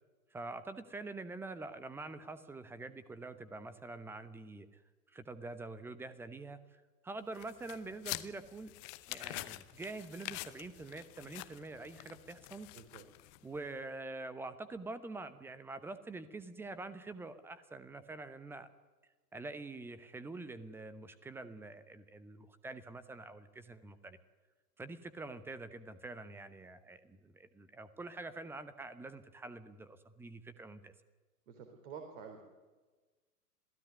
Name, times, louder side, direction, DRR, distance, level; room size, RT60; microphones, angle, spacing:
voice 1, 0.3-4.8 5.1-8.7 9.1-12.7 13.4-18.7 19.3-24.2 24.8-30.9, right 3 dB, 5° right, 14 dB, 0.9 m, -46 dB
sound 1, 7.3-13.6, left 20 dB, 20° left, 0.7 m, -46 dB
voice 2, 31.5-32.5, right 6 dB, 45° right, 4 dB, 3.8 m, -49 dB
26.5 x 17.0 x 9.5 m, 1.3 s
figure-of-eight pair, 110°, 47 cm